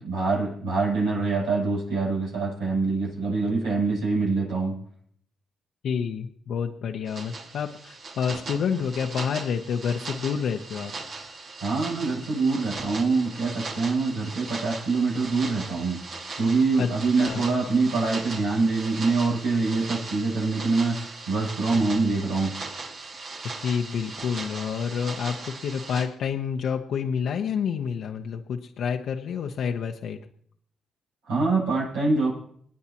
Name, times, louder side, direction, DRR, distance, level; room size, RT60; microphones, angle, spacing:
voice 1, 0.0-4.7 11.6-16.0 16.3-22.5 31.2-32.4, right 3 dB, 90° right, -6 dB, 7.8 m, -25 dB
voice 2, 5.8-10.9 16.8-16.9 17.2-17.4 23.6-30.2, left 7 dB, 70° left, 3 dB, 0.9 m, -28 dB
sound 1, 7.1-26.1, right 3 dB, 60° right, 2.3 m, -38 dB
27.0 x 9.5 x 3.0 m, 0.62 s
supercardioid pair, 60°, 0 cm